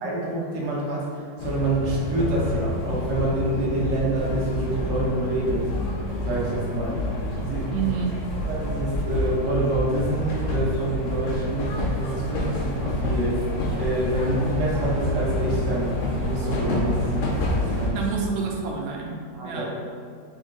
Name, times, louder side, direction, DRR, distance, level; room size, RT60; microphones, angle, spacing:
voice 1, 0.0-5.7 6.2-7.0 7.4-7.8 8.5-13.5 13.7-18.0 19.3-19.7, right 2 dB, 50° right, -5 dB, 1.0 m, -27 dB
sound 1, 1.4-17.9, left 1 dB, 85° left, 0.6 m, -28 dB
voice 2, 7.7-8.2 17.9-19.2 19.4-19.7, right 6 dB, 85° right, 0 dB, 1.4 m, -28 dB
3.8 x 2.7 x 3.6 m, 2.2 s
omnidirectional pair, 2.1 m